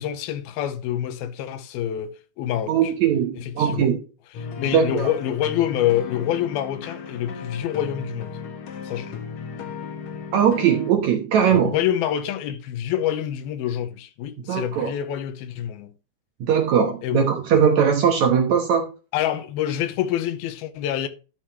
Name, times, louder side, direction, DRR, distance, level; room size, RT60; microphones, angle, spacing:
voice 1, 0.0-2.8 3.4-3.9 4.4-8.4 8.8-9.2 11.5-15.9 17.0-17.2 19.1-21.1, left 11 dB, 80° left, 2.7 m, -26 dB
voice 2, 2.7-4.0 4.7-5.1 10.3-11.7 14.5-14.9 16.4-18.9, right 8 dB, 65° right, 1.9 m, -20 dB
sound 1, 4.3-10.9, left 5 dB, 60° left, 2.2 m, -35 dB
12.0 x 6.4 x 3.0 m
omnidirectional pair, 4.4 m